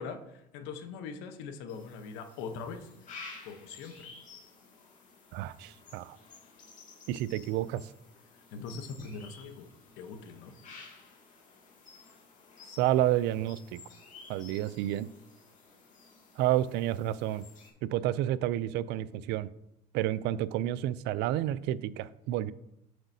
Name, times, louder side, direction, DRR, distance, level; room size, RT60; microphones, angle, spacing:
voice 1, 0.0-2.9 3.4-4.1 8.3-9.7 10.0-10.5, left 5 dB, 75° left, 8 dB, 1.0 m, -42 dB
sound 1, 1.7-17.7, left 4 dB, 40° left, 2.1 m, -53 dB
voice 2, 5.3-6.2 7.1-7.9 12.8-13.8 14.3-15.1 16.4-17.4 17.8-19.5 19.9-22.5, right 13 dB, 70° right, 17 dB, 0.4 m, -30 dB
7.8 x 7.1 x 2.7 m, 0.83 s
supercardioid pair, 110°, 19 cm